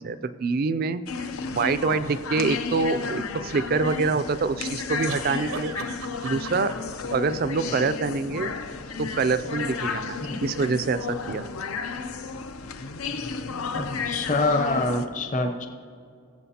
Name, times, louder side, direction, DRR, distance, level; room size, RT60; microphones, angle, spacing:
voice 1, 0.0-5.8 6.2-6.7 7.1-8.5 9.0-11.5, right 4 dB, 45° right, 13 dB, 0.3 m, -26 dB
sound 1, 1.1-15.1, left 5 dB, 90° left, 0.6 m, -33 dB
sound 2, 2.0-2.2 5.1-7.0, right 6 dB, 85° right, 0.8 m, -38 dB
voice 2, 13.8-15.7, left 2 dB, 35° left, 5 dB, 0.7 m, -26 dB
21.0 x 7.5 x 2.8 m, 2.4 s
head